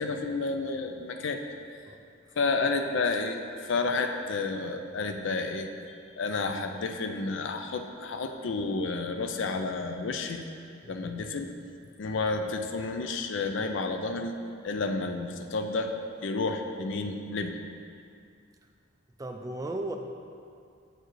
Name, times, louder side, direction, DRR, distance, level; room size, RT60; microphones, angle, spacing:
voice 1, 0.0-1.4 2.4-3.4 3.7-5.7 6.2-10.4 10.9-11.5 12.0-14.4 14.6-15.9 16.2-17.6, left 3 dB, 60° left, 6 dB, 0.4 m, -30 dB
voice 2, 19.2-20.0, right 2 dB, 15° right, 4 dB, 0.3 m, -36 dB
7.6 x 4.7 x 3.1 m, 2.4 s
head